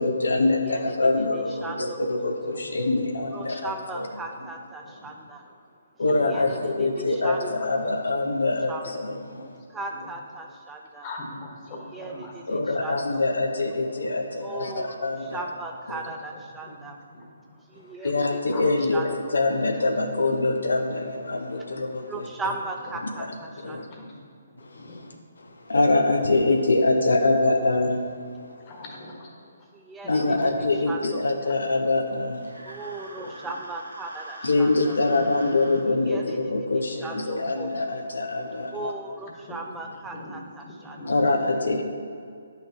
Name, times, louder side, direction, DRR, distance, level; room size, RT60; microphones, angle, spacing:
voice 1, 0.0-4.1 6.0-9.2 12.5-15.4 15.9-16.0 18.0-22.3 23.6-23.9 24.6-28.0 30.1-32.4 34.4-38.9 41.1-41.8, left 2 dB, 70° left, 4 dB, 0.7 m, -24 dB
voice 2, 0.6-2.3 3.3-5.4 6.1-8.0 8.7-9.1 9.7-11.1 11.7-13.0 14.4-17.0 17.7-18.4 18.8-19.6 22.1-24.1 29.7-30.5 30.9-31.5 32.6-35.0 36.1-36.4 36.9-37.7 38.7-41.2, right 3 dB, 10° right, 1 dB, 0.4 m, -38 dB
voice 3, 6.0-6.5 7.6-7.7 9.3-10.1 10.4-10.5 11.0-12.4 16.6-17.6 17.9-18.1 18.5-18.6 23.6-24.2 24.5-25.0 28.7-29.7 30.0-30.5 31.4-31.6 33.2-33.3 37.4-37.5 39.5-39.6 40.1-40.3 40.6-41.2, left 2 dB, 30° left, -1 dB, 1.4 m, -42 dB
sound 1, 32.3-35.8, right 1 dB, 85° right, 1.2 m, -43 dB
10.0 x 5.8 x 3.0 m, 2.3 s
figure-of-eight pair, 140°, 0 cm